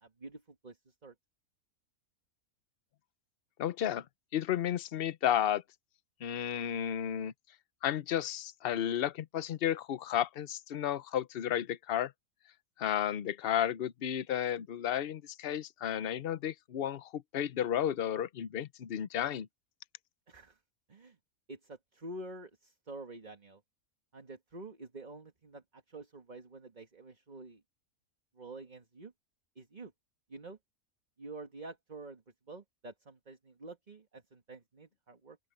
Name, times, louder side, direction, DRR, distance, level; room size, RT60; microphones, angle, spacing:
voice 1, 0.0-1.1 20.3-20.6 20.9-21.2 21.5-23.6 24.1-27.6 28.4-29.1 29.6-29.9 30.3-30.6 31.2-32.2 32.5-35.4, right 2 dB, 30° right, 1.9 m, -48 dB
voice 2, 3.6-4.0 4.3-5.6 6.2-7.3 7.8-12.1 12.8-19.5, left 10 dB, 50° left, 0.8 m, -32 dB
open air
omnidirectional pair, 1.5 m